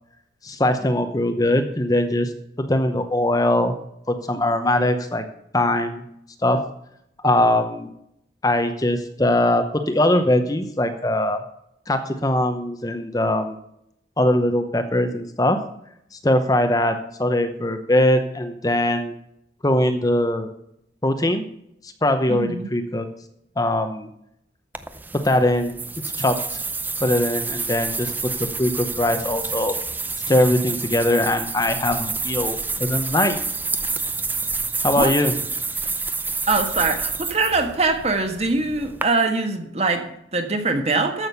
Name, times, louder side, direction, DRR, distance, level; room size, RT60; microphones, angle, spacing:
voice 1, 0.4-2.3 2.6-3.8 4.1-5.3 5.5-6.0 6.4-6.6 7.2-7.9 8.4-11.4 11.9-13.6 14.2-15.6 16.1-19.1 19.6-20.5 21.0-21.5 22.0-23.1 23.6-24.1 25.1-25.8 26.2-26.6 27.0-29.8 30.3-33.4 34.8-35.3, left 1 dB, 20° left, 7 dB, 0.8 m, -21 dB
voice 2, 22.3-22.7 35.0-35.1 36.5-41.3, right 3 dB, 35° right, 5 dB, 1.6 m, -23 dB
sound 1, 24.7-39.0, right 4 dB, 10° right, 0.6 m, -29 dB
14.0 x 6.3 x 6.8 m, 0.75 s
head